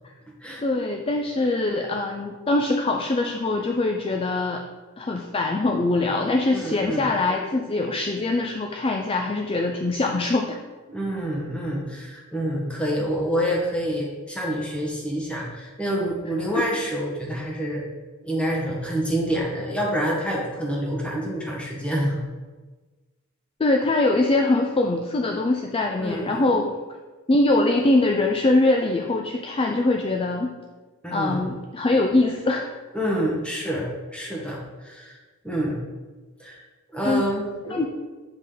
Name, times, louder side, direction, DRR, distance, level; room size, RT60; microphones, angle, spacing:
voice 1, 0.6-4.6 5.0-10.6 23.6-26.7 27.3-30.5 31.1-32.7 37.0-37.2 37.7-37.8, left 2 dB, 25° left, 2 dB, 0.4 m, -23 dB
voice 2, 6.5-7.1 10.9-17.8 18.2-22.2 26.0-26.6 31.0-31.4 32.9-35.2 35.4-35.8 36.4-36.6 36.9-37.8, equal, 5° left, -3 dB, 1.4 m, -27 dB
7.3 x 5.2 x 3.8 m, 1.3 s
head